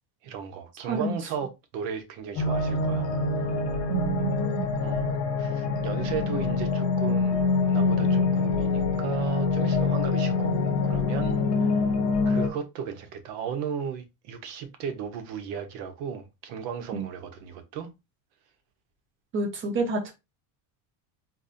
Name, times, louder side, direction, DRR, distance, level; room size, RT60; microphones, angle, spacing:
voice 1, 0.2-3.1 4.8-5.0 5.4-11.7 12.2-17.9, right 7 dB, 70° right, 1.0 m, -35 dB
voice 2, 0.8-1.1 3.9-4.7 16.9-17.0 19.3-20.1, right 3 dB, 25° right, 0.7 m, -29 dB
sound 1, 2.4-12.5, left 4 dB, 40° left, 0.8 m, -25 dB
4.1 x 2.6 x 2.6 m
cardioid pair, 165°, 45 cm